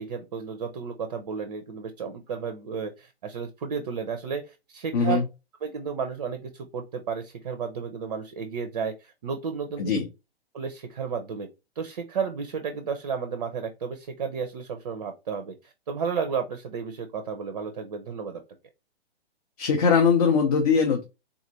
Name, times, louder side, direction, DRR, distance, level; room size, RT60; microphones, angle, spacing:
voice 1, 0.0-5.2 5.6-9.9 10.5-11.5 11.8-18.4, right 6 dB, 40° right, 7 dB, 0.5 m, -32 dB
voice 2, 4.9-5.2 9.8-10.1 19.6-21.0, left 5 dB, 40° left, 3 dB, 0.6 m, -21 dB
3.7 x 2.4 x 2.8 m, 0.26 s
figure-of-eight pair, 120°, 31 cm